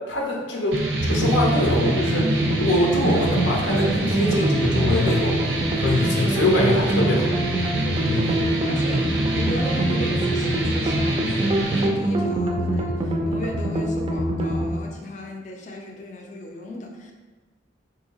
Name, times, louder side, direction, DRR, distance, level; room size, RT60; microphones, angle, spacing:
voice 1, 0.1-2.3 2.6-5.4 5.8-7.3 8.1-8.4, left 1 dB, 85° left, -1 dB, 0.6 m, -23 dB
sound 1, 0.7-11.9, right 1 dB, 85° right, 0.6 m, -26 dB
sound 2, 1.0-14.7, right 1 dB, 30° right, 0.4 m, -25 dB
voice 2, 8.3-17.1, left 1 dB, 40° left, 1 dB, 0.5 m, -36 dB
3.7 x 2.7 x 2.8 m, 1.4 s
head